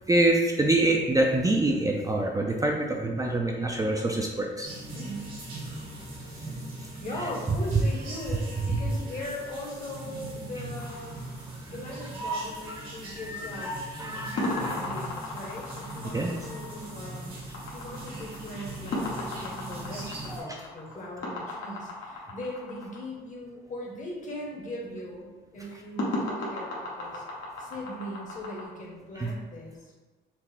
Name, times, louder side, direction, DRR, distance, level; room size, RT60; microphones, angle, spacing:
voice 1, 0.1-4.7 8.7-8.9 12.2-12.7 13.3-14.8 16.1-16.3 20.3-20.6 29.2-29.3, right 2 dB, 20° right, 0 dB, 0.4 m, -26 dB
sound 1, 4.6-20.4, right 1 dB, 80° right, 1.4 m, -40 dB
voice 2, 4.9-5.4 7.0-11.2 11.7-17.3 17.7-27.2 27.6-29.9, left 1 dB, 40° left, -2 dB, 1.2 m, -39 dB
sound 2, 10.8-12.2 14.4-23.0 26.0-28.6, left 2 dB, 70° left, 1.2 m, -35 dB
5.8 x 2.0 x 3.3 m, 1.2 s
cardioid pair, 90°, 20 cm